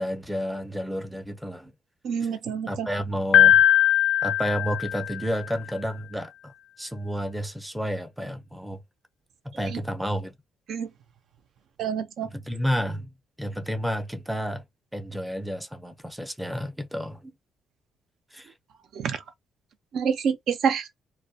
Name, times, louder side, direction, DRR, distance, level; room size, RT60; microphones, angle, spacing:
voice 1, 0.0-1.7 2.2-2.3 2.7-3.6 4.2-6.5 6.8-8.8 9.4-10.3 12.3-13.1 13.4-14.6 14.9-17.3 18.3-18.5, equal, 5° right, 0.5 m, -31 dB
voice 2, 2.0-2.9 9.7-9.8 10.7-10.9 11.8-12.3 19.0-19.2 19.9-20.9, right 7 dB, 70° right, 0.5 m, -27 dB
Piano, 3.3-5.4, left 13 dB, 85° left, 0.4 m, -19 dB
2.2 x 2.2 x 2.6 m
cardioid pair, 110°, 0 cm